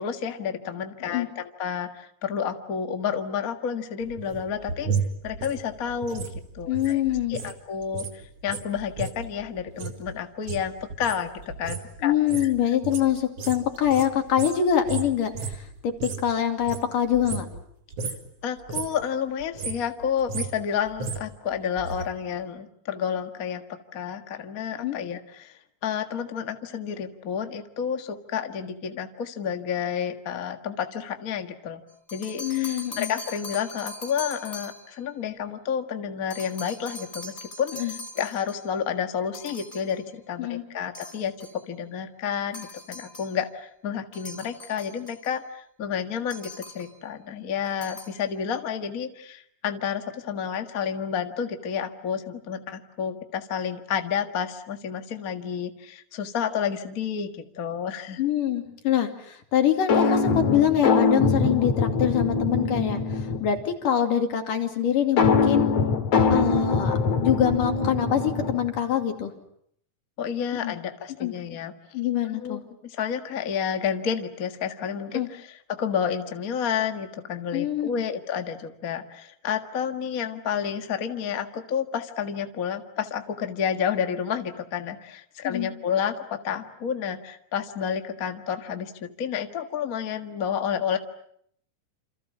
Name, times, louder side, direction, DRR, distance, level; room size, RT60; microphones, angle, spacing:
voice 1, 0.0-4.9 5.2-6.3 6.5-7.0 7.3-12.1 18.4-25.5 25.8-31.8 32.1-58.2 70.2-71.7 72.2-91.0, left 7 dB, 35° left, 6 dB, 1.5 m, -30 dB
sound 1, 4.0-7.6 7.8-16.3 16.6-17.7 17.9-18.3 18.6-19.0 19.4-22.1 22.3-22.4, right 5 dB, 50° right, 2.9 m, -34 dB
voice 2, 6.7-7.4 12.0-17.5 24.8-25.0 32.4-33.1 37.7-37.9 40.4-40.6 58.2-63.0 63.4-65.7 66.3-69.3 70.6-70.7 71.2-71.3 71.9-72.6 75.1-75.3 77.5-77.9 85.4-85.7, left 10 dB, 75° left, 5 dB, 4.2 m, -24 dB
sound 2, 31.9-35.0 36.3-38.7 39.3-40.0 40.9-41.6 42.5-43.4 44.1-45.4 46.3-47.0 47.6-48.2, left 2 dB, 15° left, 3.3 m, -41 dB
sound 3, 59.9-63.6 65.2-68.8, left 4 dB, 60° left, 3.7 m, -23 dB
28.5 x 28.0 x 7.4 m, 0.70 s
omnidirectional pair, 3.8 m